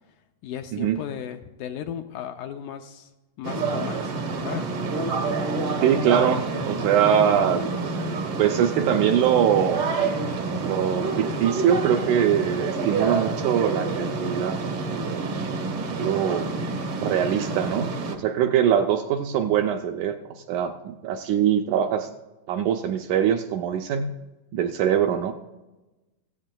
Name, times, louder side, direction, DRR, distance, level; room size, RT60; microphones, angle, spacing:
voice 1, 0.4-3.1 3.4-4.7, left 9 dB, 80° left, 7 dB, 1.9 m, -35 dB
sound 1, 3.4-18.2, right 3 dB, 60° right, 1.5 m, -28 dB
voice 2, 5.8-9.9 10.6-14.6 14.9-15.4 16.0-16.5 17.0-20.2 20.5-22.1 22.5-24.1 24.5-25.3, right 9 dB, 80° right, 5 dB, 1.8 m, -23 dB
15.5 x 15.0 x 2.2 m, 1.1 s
omnidirectional pair, 3.8 m